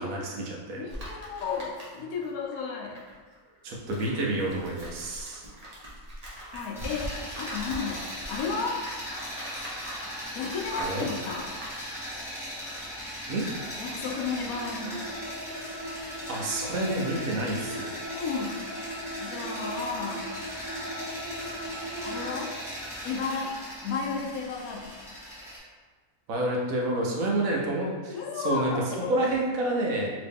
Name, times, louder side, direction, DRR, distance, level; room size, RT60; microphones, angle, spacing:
voice 1, 0.0-0.8 3.6-5.4 10.8-11.1 13.3-13.4 16.3-17.9 26.3-28.7 29.1-30.1, right 1 dB, 80° right, -2 dB, 1.1 m, -29 dB
voice 2, 0.8-3.0 6.3-8.8 10.3-11.5 13.8-15.1 18.1-18.7 19.2-20.3 22.0-22.5 23.0-23.5 23.8-24.9 28.1-29.1, left 5 dB, 85° left, 0 dB, 1.1 m, -33 dB
sound 1, 0.9-2.3 2.5-11.7, right 1 dB, 35° right, 0.7 m, -42 dB
sound 2, 6.7-25.6, equal, ahead, 0.9 m, -39 dB
sound 3, 14.2-22.4, equal, 65° left, 1.2 m, -39 dB
3.0 x 2.9 x 3.4 m, 1.5 s
omnidirectional pair, 1.5 m